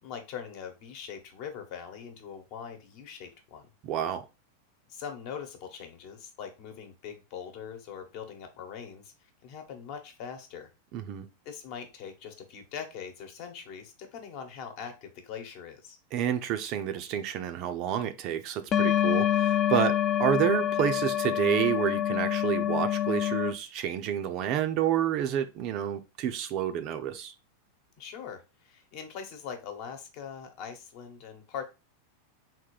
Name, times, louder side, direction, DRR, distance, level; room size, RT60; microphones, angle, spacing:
voice 1, 0.0-3.7 4.9-10.7 11.4-16.0 28.0-31.6, left 7 dB, 45° left, 6 dB, 1.1 m, -42 dB
voice 2, 3.8-4.2 10.9-11.3 16.1-27.3, right 10 dB, 40° right, 9 dB, 0.5 m, -29 dB
sound 1, 18.7-23.5, left 11 dB, 25° left, 0.4 m, -26 dB
3.7 x 2.6 x 4.7 m, 0.27 s
supercardioid pair, 160°, 0 cm